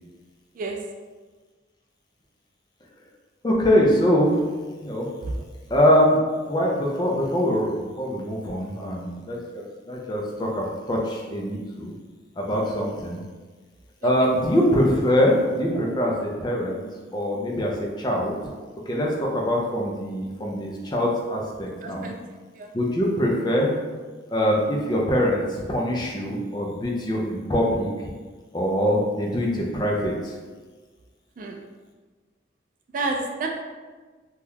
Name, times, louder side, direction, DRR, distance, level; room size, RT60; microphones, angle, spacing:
voice 1, 3.4-4.4 4.8-5.1 5.7-6.2 6.5-11.9 12.4-13.2 14.0-16.8 17.1-18.5 18.9-22.1 22.7-23.7 24.3-28.1 28.5-30.4, equal, 25° left, -2 dB, 0.4 m, -23 dB
voice 2, 21.8-22.1 22.6-22.7 31.4-31.6 32.9-33.5, right 3 dB, 45° right, 2 dB, 0.3 m, -29 dB
2.8 x 2.3 x 3.4 m, 1.4 s
head